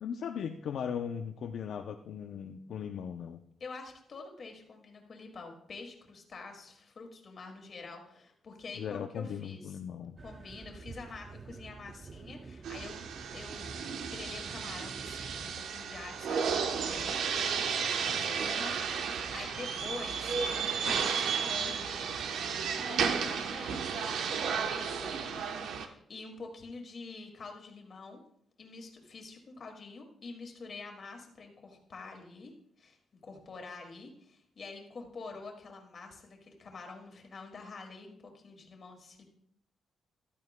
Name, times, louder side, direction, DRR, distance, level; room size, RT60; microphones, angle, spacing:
voice 1, 0.0-3.4 8.7-10.2, left 7 dB, 70° left, 5 dB, 0.5 m, -38 dB
voice 2, 3.6-9.8 10.2-13.0 13.3-13.7 14.1-17.2 18.0-22.2 22.7-24.0 24.5-25.1 25.7-28.2 28.6-33.0 33.2-39.2, left 4 dB, 45° left, 3 dB, 2.1 m, -47 dB
sound 1, 10.2-15.5, right 4 dB, 30° right, 0.5 m, -48 dB
sound 2, 12.6-25.9, right 6 dB, 85° right, 0.9 m, -33 dB
14.0 x 12.0 x 2.2 m, 0.70 s
cardioid pair, 135°, 0 cm